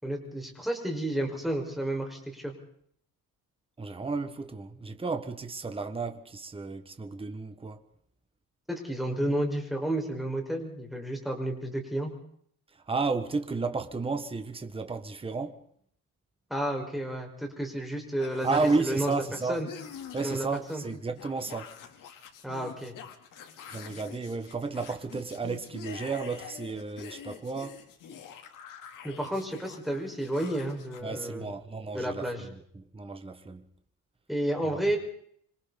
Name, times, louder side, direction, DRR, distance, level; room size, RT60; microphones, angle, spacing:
voice 1, 0.0-2.5 8.7-12.1 16.5-19.1 19.5-19.7 20.2-20.8 22.4-22.9 29.0-31.5 31.9-32.4 34.3-35.0, right 1 dB, ahead, 5.2 m, -31 dB
voice 2, 3.8-7.8 12.7-15.6 18.4-19.6 20.1-21.8 23.7-27.8 31.0-33.7 34.6-34.8, right 4 dB, 15° right, 1.7 m, -32 dB
sound 1, 18.2-31.0, left 8 dB, 70° left, 3.4 m, -46 dB
27.0 x 25.5 x 4.2 m
cardioid pair, 155°, 33 cm